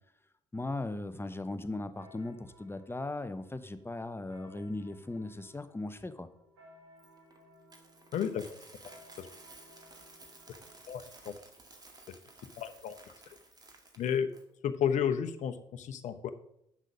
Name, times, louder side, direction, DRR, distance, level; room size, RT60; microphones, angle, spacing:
voice 1, 0.5-6.3, left 2 dB, 15° left, 10 dB, 0.9 m, -38 dB
sound 1, 1.6-10.8, left 1 dB, 85° right, 2.9 m, -60 dB
Coin (dropping), 7.0-14.4, right 2 dB, 30° right, 1.9 m, -55 dB
voice 2, 8.1-8.4 9.2-9.3 10.9-11.3 12.6-13.0 14.0-14.3 14.6-16.3, left 8 dB, 60° left, 9 dB, 0.9 m, -32 dB
8.4 x 6.1 x 5.5 m, 0.74 s
hypercardioid pair, 50°, 14 cm